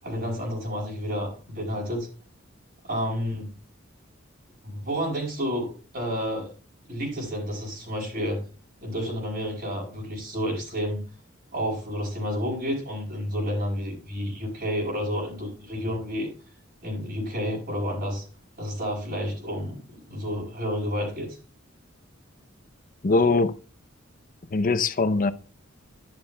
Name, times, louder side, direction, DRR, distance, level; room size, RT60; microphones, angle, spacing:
voice 1, 0.0-2.1 2.8-3.5 4.6-6.5 6.9-8.4 8.8-11.0 11.5-16.3 16.8-18.3 18.6-21.4, equal, 50° right, 5.4 m, -30 dB
voice 2, 23.0-23.6 24.5-25.3, left 3 dB, 40° left, 0.6 m, -21 dB
11.5 x 11.5 x 2.2 m
head